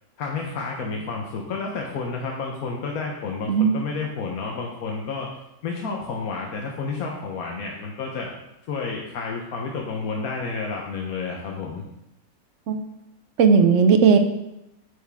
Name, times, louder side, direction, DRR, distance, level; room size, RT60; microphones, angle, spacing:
voice 1, 0.2-5.3 5.6-8.3 8.7-11.8, left 4 dB, 75° left, 0 dB, 1.3 m, -30 dB
voice 2, 13.4-14.2, right 5 dB, 65° right, 7 dB, 0.9 m, -16 dB
8.4 x 4.8 x 3.5 m, 0.87 s
omnidirectional pair, 1.6 m